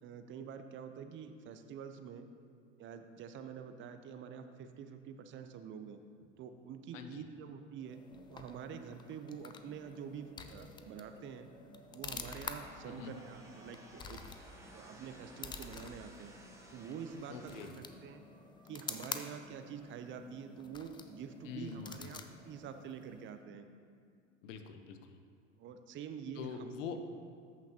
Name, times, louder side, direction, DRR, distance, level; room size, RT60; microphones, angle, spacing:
voice 1, 0.0-2.3 2.8-6.0 6.4-8.0 8.3-11.5 11.9-14.2 14.7-16.3 16.7-18.2 18.7-23.7 25.6-27.0, right 7 dB, 30° right, 8 dB, 0.6 m, -47 dB
voice 2, 6.9-7.3 12.8-13.2 17.3-17.7 21.4-22.0 24.4-25.2 26.3-27.0, left 6 dB, 75° left, 7 dB, 0.9 m, -44 dB
sound 1, 7.8-23.4, left 5 dB, 15° left, 0.3 m, -49 dB
sound 2, 10.2-20.2, right 2 dB, 75° right, 1.9 m, -65 dB
sound 3, 12.5-17.7, right 1 dB, 10° right, 1.2 m, -57 dB
14.0 x 5.8 x 2.9 m, 2.3 s
hypercardioid pair, 95°, 38 cm